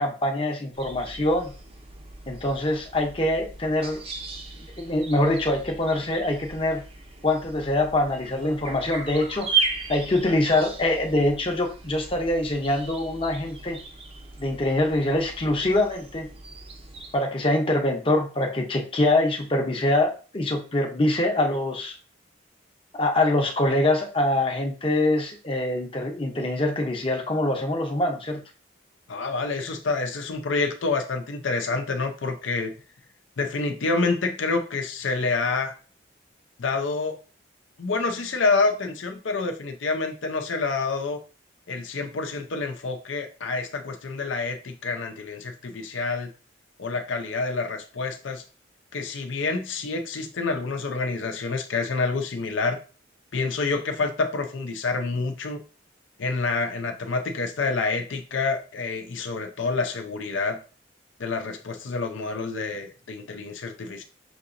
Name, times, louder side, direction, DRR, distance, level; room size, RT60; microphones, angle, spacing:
voice 1, 0.0-1.5 2.3-4.0 4.8-6.8 7.2-13.8 14.4-16.3 17.1-21.9 22.9-28.4, left 1 dB, 25° left, 1 dB, 0.7 m, -24 dB
sound 1, 0.7-17.2, right 4 dB, 30° right, 0.6 m, -36 dB
voice 2, 29.1-32.7 33.4-35.7 36.6-37.2 37.8-41.2 41.7-46.3 46.8-48.4 48.9-52.8 53.3-55.6 56.2-60.6 61.2-64.0, left 3 dB, 80° left, 5 dB, 0.6 m, -27 dB
5.8 x 2.8 x 2.5 m, 0.35 s
head